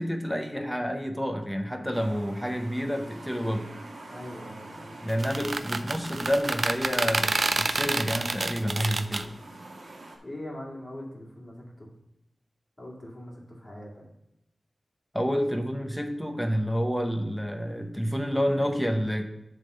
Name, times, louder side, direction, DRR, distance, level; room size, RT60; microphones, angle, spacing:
voice 1, 0.0-3.7 5.0-9.3 15.1-19.2, equal, ahead, 5 dB, 0.9 m, -29 dB
sound 1, 1.9-10.2, right 2 dB, 70° right, 1.3 m, -45 dB
voice 2, 4.1-5.0 8.8-9.4 10.2-11.9 12.8-14.0, left 1 dB, 25° left, -3 dB, 2.4 m, -42 dB
sound 2, 5.1-9.2, right 3 dB, 45° right, 0.4 m, -28 dB
7.3 x 3.7 x 6.5 m, 0.86 s
wide cardioid pair, 90°, 0 cm